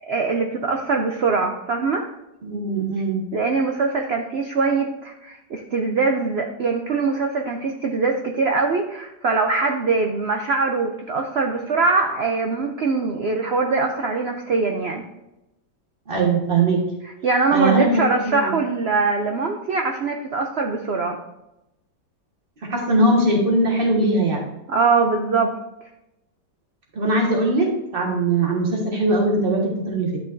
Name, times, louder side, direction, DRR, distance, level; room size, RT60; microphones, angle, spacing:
voice 1, 0.1-2.1 3.3-15.0 17.0-21.2 24.7-25.5, right 4 dB, 70° right, 3 dB, 0.6 m, -22 dB
voice 2, 2.4-3.2 16.1-16.8 17.5-18.5 22.7-24.4 27.0-30.2, right 2 dB, 35° right, -1 dB, 1.7 m, -20 dB
11.0 x 5.6 x 2.6 m, 0.91 s
omnidirectional pair, 1.8 m